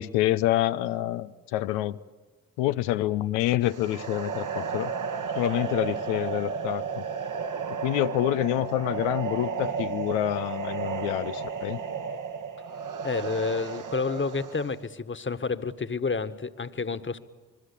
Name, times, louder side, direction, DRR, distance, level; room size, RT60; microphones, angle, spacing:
voice 1, 0.0-2.0 2.6-4.9 5.4-7.1 7.7-11.8, left 14 dB, 85° left, 0.7 m, -27 dB
sound 1, 3.7-14.8, right 6 dB, 50° right, 1.4 m, -33 dB
voice 2, 13.0-17.2, left 4 dB, 30° left, 1.6 m, -30 dB
27.0 x 21.5 x 8.5 m
hypercardioid pair, 40°, 39 cm